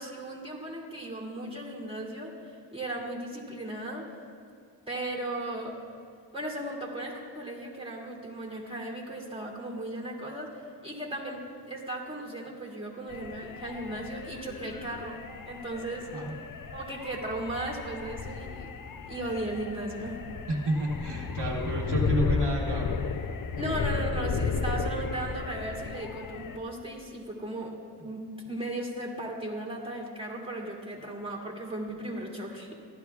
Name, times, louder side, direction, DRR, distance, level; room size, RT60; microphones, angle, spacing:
voice 1, 0.0-4.1 4.9-5.8 6.3-15.2 15.4-16.1 16.7-18.7 19.1-20.2 23.6-27.8 28.0-32.7, right 1 dB, 15° right, -2 dB, 2.1 m, -36 dB
sound 1, 13.1-26.6, left 5 dB, 55° left, 0.5 m, -34 dB
voice 2, 20.5-22.9, right 1 dB, 75° right, -1 dB, 1.2 m, -30 dB
15.0 x 11.5 x 2.3 m, 2.3 s
wide cardioid pair, 40°, 40 cm